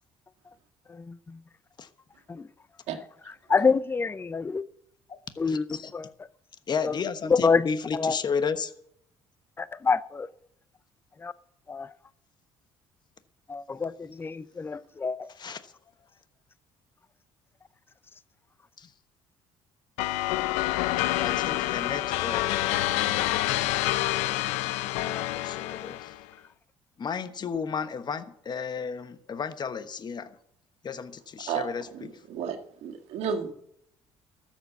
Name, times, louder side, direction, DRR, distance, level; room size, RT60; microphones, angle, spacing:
voice 1, 0.9-1.4 2.3-2.5 3.3-4.6 5.4-5.7 5.9-6.1 6.8-7.0 7.2-7.7 7.9-8.2 9.6-10.3 11.2-11.3 11.7-11.9 13.5-15.3, left 5 dB, 20° left, 0.5 m, -27 dB
voice 2, 5.5-5.9 6.7-8.7 15.4-15.7 18.8-18.9 21.0-23.9 25.0-26.1 27.0-30.3 30.8-32.1, left 6 dB, 40° left, 1.2 m, -33 dB
sound 1, 20.0-26.2, left 16 dB, 90° left, 0.5 m, -27 dB
voice 3, 31.9-33.5, right 7 dB, 75° right, 1.9 m, -32 dB
13.5 x 7.5 x 8.2 m
supercardioid pair, 85°, 11 cm